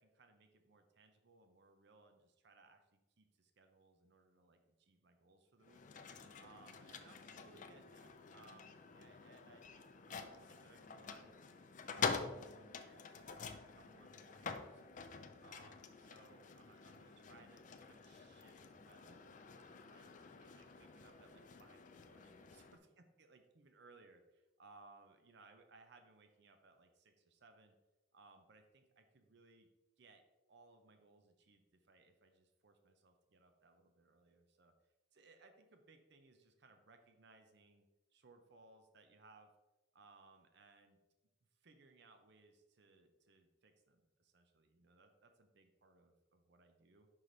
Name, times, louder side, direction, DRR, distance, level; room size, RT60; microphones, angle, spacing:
voice 1, 0.0-5.8 6.4-11.5 11.9-15.0 15.4-27.7 28.1-29.7 30.0-30.2 30.5-34.7 35.1-37.9 38.1-39.5 39.9-41.0 41.6-47.1, right 3 dB, 60° right, 6 dB, 0.6 m, -65 dB
sound 1, 5.6-22.8, left 5 dB, 40° left, 0.4 m, -47 dB
5.6 x 4.9 x 3.9 m, 1.1 s
head